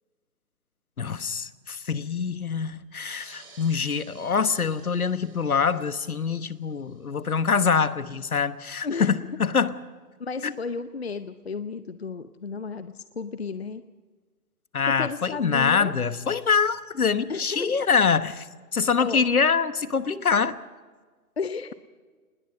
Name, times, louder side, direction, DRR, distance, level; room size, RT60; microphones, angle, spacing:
voice 1, 1.0-9.7 10.4-10.5 14.7-18.5 18.7-20.6, left 5 dB, 65° left, 13 dB, 1.3 m, -24 dB
sound 1, 2.9-8.0, right 5 dB, 20° right, 4.2 m, -55 dB
voice 2, 10.2-13.8 14.9-15.9 17.3-17.7 19.0-19.2 21.4-21.7, left 4 dB, 45° left, 12 dB, 0.7 m, -33 dB
27.0 x 20.0 x 5.6 m, 1.4 s
figure-of-eight pair, 160°, 46 cm